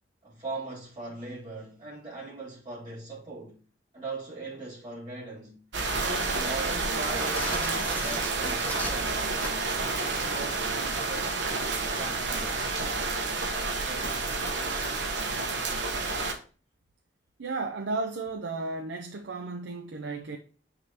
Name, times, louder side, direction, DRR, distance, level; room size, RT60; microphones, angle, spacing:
voice 1, 0.2-3.6 3.9-5.6 5.9-9.2 10.0-11.4 12.0-12.8 13.9-14.4, right 3 dB, 25° right, 2.1 m, -40 dB
sound 1, 5.7-16.3, right 3 dB, 75° right, 1.0 m, -29 dB
sound 2, 7.2-9.8, left 1 dB, 10° left, 1.0 m, -39 dB
voice 2, 17.4-20.4, right 3 dB, 90° right, 0.6 m, -34 dB
9.4 x 3.7 x 2.9 m
head